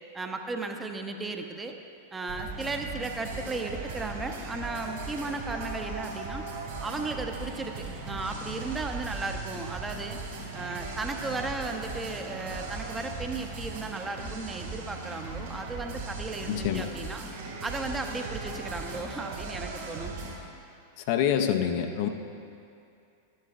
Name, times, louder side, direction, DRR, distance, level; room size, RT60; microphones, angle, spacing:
voice 1, 0.1-1.7 2.1-6.4 6.8-10.2 10.5-17.3 17.6-20.1, right 3 dB, 15° right, 4 dB, 0.7 m, -35 dB
sound 1, 2.3-20.4, right 3 dB, 60° right, 2.4 m, -38 dB
voice 2, 16.5-16.9 21.1-22.1, left 9 dB, 50° left, 6 dB, 0.5 m, -26 dB
13.0 x 10.5 x 2.3 m, 2.5 s
figure-of-eight pair, 90°, 0 cm